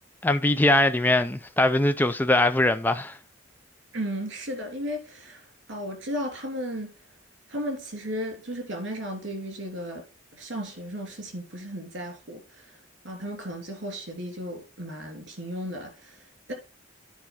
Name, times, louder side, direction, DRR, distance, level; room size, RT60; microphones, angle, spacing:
voice 1, 0.2-3.2, left 1 dB, 10° left, 0.4 m, -22 dB
voice 2, 3.9-6.9 7.5-10.0 10.3-12.8 13.0-16.5, equal, 60° right, 3.1 m, -35 dB
9.8 x 4.2 x 5.8 m
head